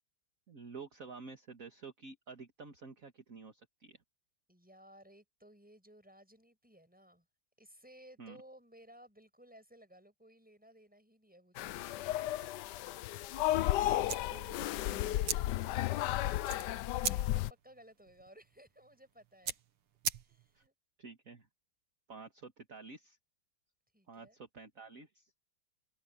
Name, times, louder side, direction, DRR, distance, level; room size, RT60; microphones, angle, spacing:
voice 1, 0.5-4.0 8.2-8.4 14.3-14.5 20.5-20.6 21.0-21.5 22.1-23.2 24.1-25.3, right 4 dB, 40° right, 2.3 m, -50 dB
voice 2, 4.5-7.3 7.6-12.9 13.4-19.6 20.2-20.7 23.9-24.4, equal, 5° right, 6.8 m, -59 dB
sound 1, 11.6-17.5, left 14 dB, 85° left, 0.9 m, -33 dB
sound 2, 14.1-20.7, right 8 dB, 75° right, 2.4 m, -42 dB
omnidirectional pair, 2.4 m